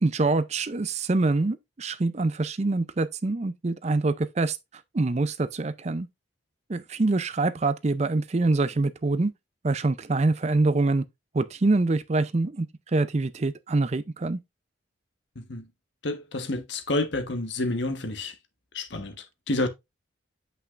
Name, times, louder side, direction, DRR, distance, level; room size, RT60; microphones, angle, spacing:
voice 1, 0.0-4.6 4.9-6.1 6.7-9.3 9.6-11.0 11.3-14.4, right 3 dB, 35° right, 0.4 m, -25 dB
voice 2, 15.3-15.7 16.0-18.3 18.7-19.7, left 2 dB, 60° left, 1.2 m, -29 dB
8.3 x 5.6 x 2.4 m
head